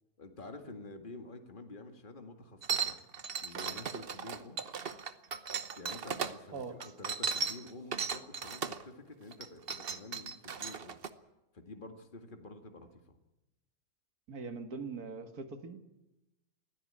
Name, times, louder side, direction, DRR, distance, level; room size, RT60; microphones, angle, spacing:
voice 1, 0.2-3.0 3.4-4.6 5.8-11.0 11.5-13.0, left 2 dB, 35° left, 5 dB, 2.1 m, -49 dB
sound 1, 2.6-6.3 6.8-8.8 9.3-11.1, right 6 dB, 45° right, 1.1 m, -36 dB
voice 2, 6.5-6.9 14.3-15.8, right 4 dB, 80° right, 7 dB, 2.2 m, -42 dB
23.0 x 16.0 x 8.7 m, 0.96 s
omnidirectional pair, 1.6 m